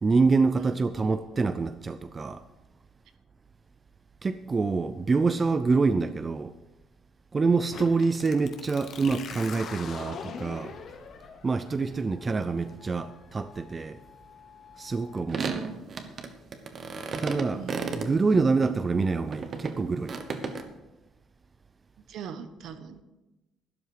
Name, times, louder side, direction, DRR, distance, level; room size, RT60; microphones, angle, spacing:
voice 1, 0.0-2.4 4.2-6.5 7.3-10.8 11.4-14.0 14.8-15.7 17.2-17.6 17.9-20.1, right 4 dB, 20° right, 0.4 m, -26 dB
sound 1, 7.7-15.2, left 6 dB, 45° left, 1.3 m, -43 dB
sound 2, 15.3-18.8 19.3-20.6, right 5 dB, 35° right, 1.1 m, -33 dB
voice 2, 17.6-18.2 22.1-23.0, right 7 dB, 60° right, 1.1 m, -40 dB
12.5 x 11.0 x 4.8 m
cardioid pair, 165°, 0 cm